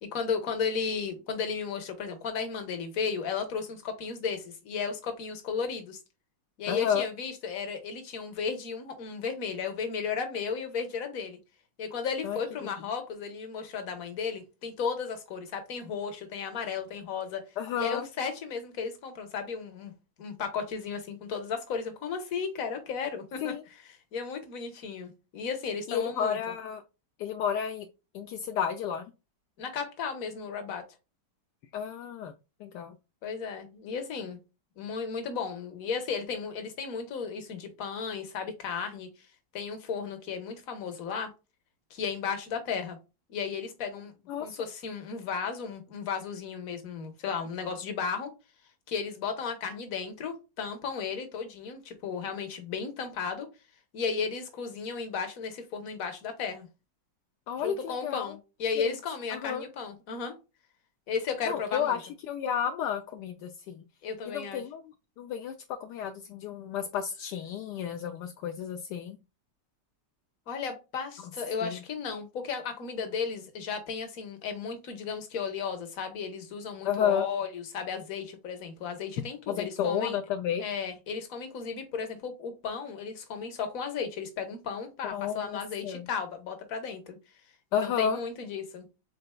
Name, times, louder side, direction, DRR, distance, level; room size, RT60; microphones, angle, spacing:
voice 1, 0.0-6.0 6.6-11.4 11.8-17.4 17.7-19.9 20.2-23.5 24.1-26.4 29.6-30.8 33.2-34.4 34.8-39.3 39.5-41.3 41.9-43.0 43.3-44.1 44.4-48.3 48.9-53.5 53.9-56.7 57.6-60.3 61.1-62.0 64.0-64.6 70.5-80.2 80.6-87.2 87.7-88.9, left 6 dB, 55° left, 1.4 m, -34 dB
voice 2, 6.7-7.0 12.2-12.4 17.6-18.1 23.4-23.6 25.9-26.8 27.2-27.9 28.1-29.1 31.7-32.3 32.6-33.0 44.3-44.6 57.5-58.4 58.8-58.9 59.3-59.6 61.5-63.8 64.3-65.5 65.8-69.2 71.6-71.8 76.8-77.3 79.5-80.6 85.1-86.1 87.7-88.2, left 8 dB, 75° left, 1.1 m, -31 dB
5.5 x 3.8 x 2.2 m
omnidirectional pair, 1.9 m